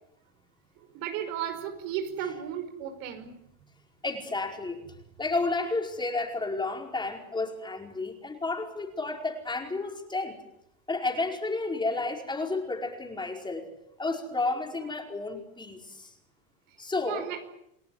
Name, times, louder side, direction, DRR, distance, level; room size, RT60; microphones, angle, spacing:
voice 1, 0.8-3.3 17.1-17.4, right 9 dB, 70° right, 7 dB, 5.2 m, -34 dB
voice 2, 4.0-4.9 5.2-10.4 10.9-13.7 14.0-16.1 16.8-17.3, left 3 dB, 10° left, 3 dB, 4.9 m, -31 dB
29.0 x 18.5 x 9.3 m, 0.80 s
supercardioid pair, 145°, 41 cm